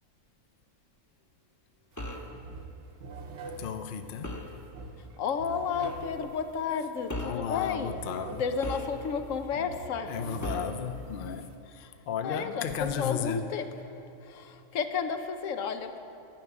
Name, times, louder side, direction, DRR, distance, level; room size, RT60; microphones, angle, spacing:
sound 1, 1.9-2.0 2.3-11.5, right 4 dB, 65° right, 1.1 m, -45 dB
sound 2, 2.0-2.4 4.2-4.6 5.8-6.1 7.1-7.5 8.6-9.3 10.4-10.8, left 1 dB, 15° left, 0.7 m, -37 dB
voice 1, 3.6-4.4 7.2-8.4 10.1-13.4, left 7 dB, 55° left, 8 dB, 0.7 m, -34 dB
voice 2, 5.2-8.0 8.3-10.2 11.8-11.9 12.2-12.7 13.0-13.7 14.2-16.0, left 6 dB, 90° left, 8 dB, 1.1 m, -32 dB
12.0 x 6.1 x 9.5 m, 2.7 s
omnidirectional pair, 1.3 m